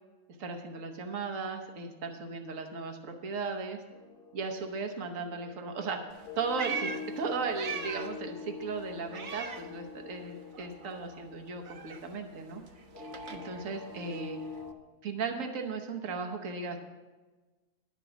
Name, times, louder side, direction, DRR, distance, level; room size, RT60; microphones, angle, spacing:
voice 1, 0.4-3.8 4.3-6.0 6.3-12.6 13.0-14.4 15.0-16.8, right 4 dB, 85° right, 4 dB, 1.3 m, -36 dB
sound 1, 3.9-14.7, left 5 dB, 20° left, 0.7 m, -45 dB
Meow, 6.1-8.3 8.6-10.3 10.5-14.7, right 6 dB, 45° right, 0.8 m, -41 dB
11.0 x 6.0 x 8.0 m, 1.2 s
omnidirectional pair, 1.3 m